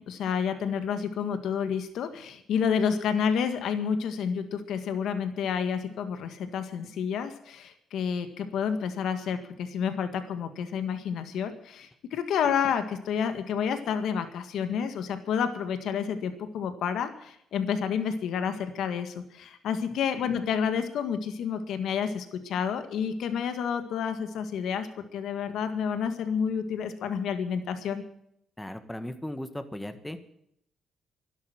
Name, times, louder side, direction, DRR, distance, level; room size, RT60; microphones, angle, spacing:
voice 1, 0.1-28.0, left 7 dB, 75° left, 8 dB, 1.8 m, -30 dB
voice 2, 28.6-30.2, left 1 dB, 10° left, 9 dB, 1.6 m, -37 dB
12.5 x 11.5 x 9.4 m, 0.72 s
cardioid pair, 90°, 0 cm